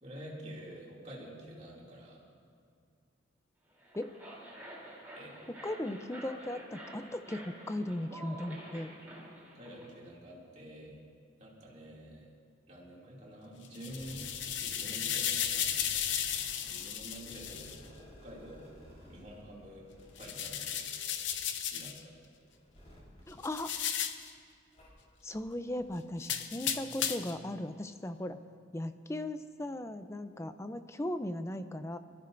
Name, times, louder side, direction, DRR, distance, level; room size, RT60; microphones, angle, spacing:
voice 1, 0.0-2.2 5.1-5.3 9.5-11.0 11.4-12.3 12.7-14.3 14.6-15.7 16.6-18.7 19.1-19.9 20.2-20.8 21.7-22.1, equal, 35° right, -4 dB, 2.6 m, -48 dB
sound 1, 3.7-9.9, right 1 dB, 10° right, 3.2 m, -49 dB
voice 2, 5.5-8.9 23.3-23.7 25.2-28.4 28.7-32.0, left 1 dB, 15° left, 10 dB, 0.4 m, -37 dB
sound 2, 13.7-17.8 20.2-22.0 23.4-24.3 26.2-27.4, left 9 dB, 65° left, 0.7 m, -35 dB
sound 3, 13.8-24.2 24.7-24.9 25.3-25.4 25.8-25.9, equal, 35° left, 3.8 m, -55 dB
23.0 x 14.0 x 2.6 m, 2.4 s
head